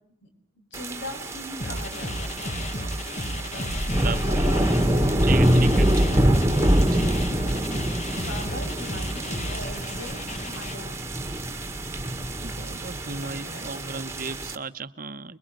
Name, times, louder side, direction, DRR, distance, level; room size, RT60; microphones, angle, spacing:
voice 1, 0.6-2.6 3.3-6.4 7.4-7.8 8.1-11.0 13.2-13.7, left 1 dB, 60° left, 5 dB, 7.5 m, -41 dB
sound 1, 0.7-14.6, right 1 dB, 15° right, 1.9 m, -25 dB
sound 2, 1.6-10.7, equal, 35° left, 1.7 m, -32 dB
sound 3, 3.7-6.2 6.6-6.7, equal, 10° left, 2.2 m, -32 dB
voice 2, 4.0-4.4 5.2-5.9 6.9-7.3 12.4-15.4, right 5 dB, 45° right, 11 dB, 1.1 m, -35 dB
25.5 x 23.0 x 9.2 m, 0.67 s
head